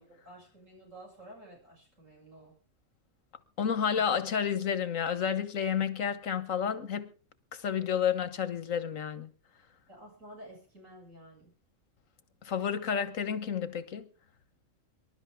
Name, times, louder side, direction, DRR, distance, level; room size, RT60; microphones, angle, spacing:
voice 1, 0.0-2.6 3.9-4.0 9.9-11.5, right 1 dB, 80° right, 7.4 m, -51 dB
voice 2, 3.6-7.1 7.5-9.3 12.4-14.1, left 7 dB, 90° left, 1.6 m, -30 dB
25.5 x 12.0 x 3.6 m
omnidirectional pair, 1.3 m